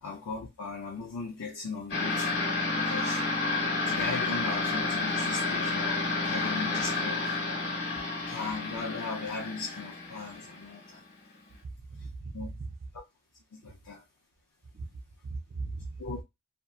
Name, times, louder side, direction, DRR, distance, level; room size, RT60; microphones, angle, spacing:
voice 1, 0.0-2.4 2.8-3.2 3.9-7.3 8.3-11.0 12.3-12.5 13.5-14.0 16.0-16.2, left 4 dB, 70° left, 0.5 m, -38 dB
sound 1, 1.9-11.0, left 3 dB, 50° left, 1.0 m, -30 dB
voice 2, 11.6-12.7 14.7-14.9 15.2-16.2, right 3 dB, 45° right, 0.4 m, -39 dB
2.6 x 2.3 x 2.2 m
head